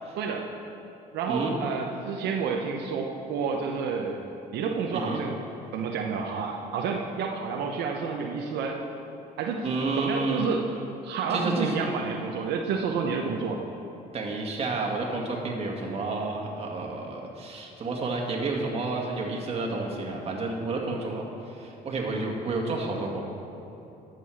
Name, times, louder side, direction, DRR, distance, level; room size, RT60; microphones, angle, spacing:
voice 1, 0.2-0.5 1.1-4.2 4.5-5.3 5.7-8.8 9.4-9.7 10.0-10.6 11.0-13.6, right 5 dB, 80° right, 1 dB, 0.9 m, -29 dB
voice 2, 9.6-10.5 11.3-11.7 14.1-23.2, right 3 dB, 35° right, 0 dB, 2.0 m, -30 dB
11.0 x 7.7 x 6.3 m, 2.9 s
cardioid pair, 110°, 17 cm